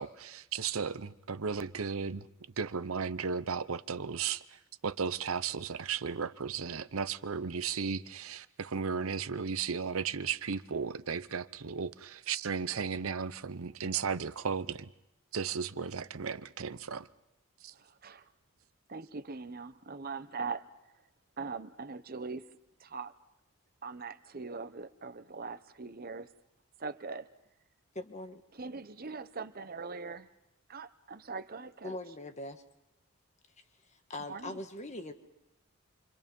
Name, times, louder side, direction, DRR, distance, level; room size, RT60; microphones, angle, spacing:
voice 1, 0.0-2.3 2.6-14.9 15.3-17.1 17.6-17.7, right 6 dB, 75° right, 0.8 m, -35 dB
voice 2, 17.7-18.3 18.9-20.7 21.4-22.5 22.8-23.1 23.8-26.3 26.8-27.3 28.5-30.3 30.7-32.0 34.3-34.6, right 4 dB, 45° right, 0.9 m, -41 dB
voice 3, 28.0-28.4 31.8-32.6 33.9-35.1, left 2 dB, 30° left, 1.6 m, -41 dB
28.0 x 25.0 x 5.4 m
head